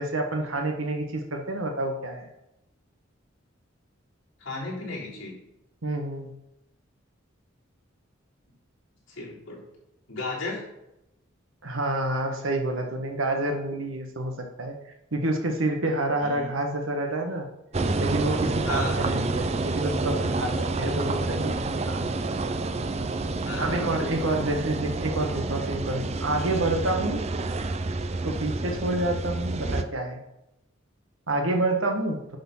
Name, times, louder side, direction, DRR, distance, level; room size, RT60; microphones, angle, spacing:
voice 1, 0.0-2.3 5.8-6.3 11.6-14.8 15.1-17.5 18.0-22.0 23.6-27.2 28.2-30.2 31.3-32.2, right 2 dB, 85° right, 3 dB, 1.6 m, -28 dB
voice 2, 4.4-5.4 9.1-9.6 10.1-10.7 16.2-16.5 18.6-19.2 23.4-23.9, left 3 dB, 70° left, -6 dB, 3.7 m, -35 dB
sound 1, 17.7-29.8, right 3 dB, 30° right, 0.5 m, -28 dB
10.5 x 4.3 x 5.7 m, 0.88 s
head